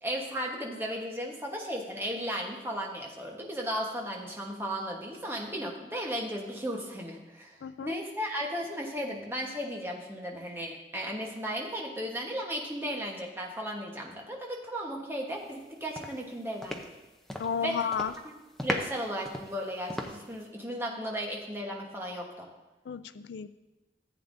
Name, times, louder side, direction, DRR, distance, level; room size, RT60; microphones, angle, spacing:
voice 1, 0.0-7.5 7.8-16.9 17.6-17.7 18.2-18.3 18.6-22.5, equal, 15° right, -1 dB, 1.2 m, -35 dB
voice 2, 7.6-8.0 17.4-18.1 22.9-23.5, left 6 dB, 80° left, 13 dB, 0.4 m, -32 dB
sound 1, 15.4-15.7 16.0-17.6 17.9-18.2 18.6-20.4, equal, ahead, 0.6 m, -37 dB
14.5 x 8.1 x 2.7 m, 1.1 s
head